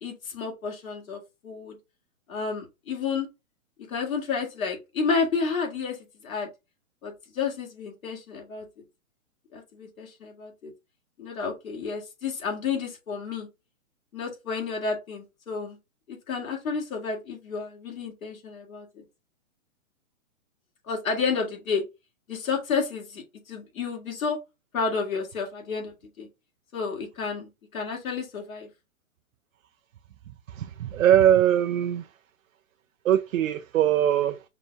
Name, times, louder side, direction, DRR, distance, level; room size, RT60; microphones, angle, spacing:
voice 1, 0.0-1.8 2.3-3.3 3.9-6.0 6.2-6.5 7.0-8.7 9.5-10.7 11.2-13.5 14.1-15.8 16.1-19.0 20.9-21.8 22.3-24.4 24.7-26.3 26.7-28.7, left 5 dB, 85° left, 2.1 m, -31 dB
voice 2, 30.5-32.1 33.0-34.4, right 11 dB, 75° right, 0.5 m, -21 dB
5.8 x 2.3 x 2.7 m
hypercardioid pair, 175°, 40 cm